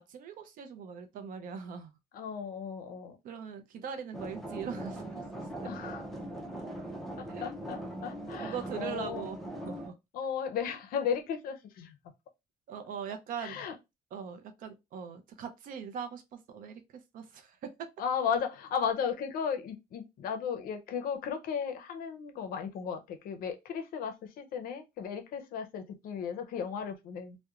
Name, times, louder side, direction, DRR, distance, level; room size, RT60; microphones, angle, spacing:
voice 1, 0.0-2.0 3.2-5.7 7.3-7.5 8.4-10.0 12.7-13.6 14.1-17.9, right 7 dB, 60° right, 0.4 m, -41 dB
voice 2, 2.1-3.2 5.6-6.0 7.2-9.2 10.1-12.0 13.4-13.7 18.0-27.4, left 7 dB, 65° left, 0.5 m, -35 dB
sound 1, 4.1-9.9, right 1 dB, ahead, 0.4 m, -40 dB
2.8 x 2.1 x 2.3 m
cardioid pair, 180°, 16 cm